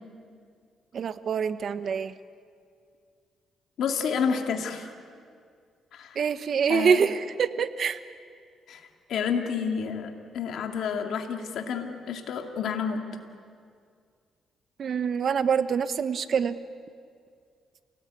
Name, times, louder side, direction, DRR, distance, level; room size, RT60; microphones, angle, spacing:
voice 1, 0.9-2.1 6.1-8.0 14.8-16.6, right 6 dB, 55° right, 12 dB, 1.1 m, -25 dB
voice 2, 3.8-4.9 5.9-6.2 6.7-7.0 8.7-8.8 9.1-13.0, left 6 dB, 70° left, 4 dB, 2.5 m, -29 dB
28.5 x 18.5 x 8.5 m, 2.2 s
cardioid pair, 90°, 0 cm